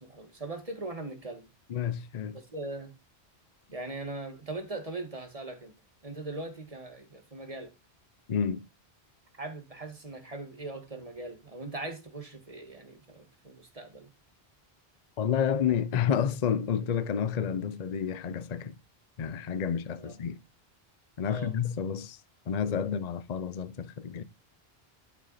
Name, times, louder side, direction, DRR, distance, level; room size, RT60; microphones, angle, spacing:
voice 1, 0.0-1.5 2.5-2.9 3.7-5.7 6.0-7.7 9.4-14.1 20.0-20.2 21.2-21.5, right 2 dB, 35° right, 1.9 m, -40 dB
voice 2, 1.7-2.4 8.3-8.7 15.2-18.7 19.2-20.4 21.2-22.2 22.5-24.2, left 8 dB, 45° left, 0.7 m, -30 dB
11.5 x 5.8 x 4.1 m
omnidirectional pair, 1.0 m